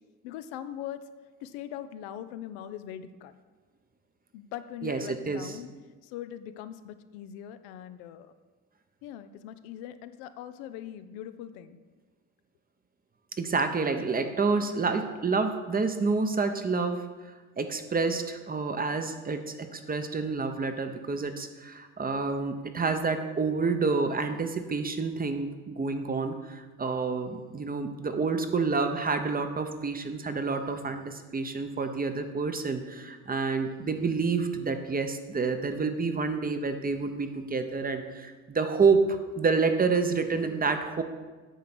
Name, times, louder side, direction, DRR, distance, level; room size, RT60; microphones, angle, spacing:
voice 1, 0.2-1.0 1.4-3.3 4.3-5.7 6.0-8.3 9.0-11.8, left 11 dB, 75° left, 11 dB, 0.6 m, -41 dB
voice 2, 4.8-5.6 13.4-17.1 17.6-41.0, right 4 dB, 20° right, 7 dB, 0.8 m, -28 dB
9.2 x 3.8 x 6.0 m, 1.3 s
supercardioid pair, 75°, 39 cm